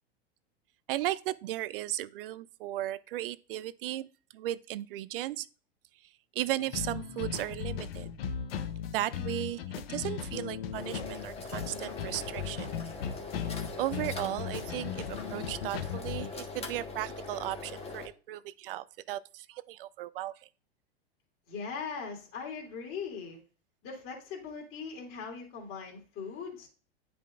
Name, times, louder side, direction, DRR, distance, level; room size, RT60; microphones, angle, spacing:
voice 1, 0.9-4.1 4.3-5.5 6.3-8.1 8.9-9.6 9.9-12.7 13.8-20.3, right 14 dB, 60° right, 0.5 m, -35 dB
sound 1, 6.6-9.4, right 1 dB, 10° right, 1.0 m, -58 dB
sound 2, 6.7-16.3, left 8 dB, 65° left, 0.9 m, -37 dB
sound 3, 10.7-18.1, left 4 dB, 20° left, 1.2 m, -42 dB
voice 2, 21.5-23.4 23.8-26.7, left 5 dB, 40° left, 2.6 m, -40 dB
9.9 x 5.1 x 2.4 m
hypercardioid pair, 100°, 32 cm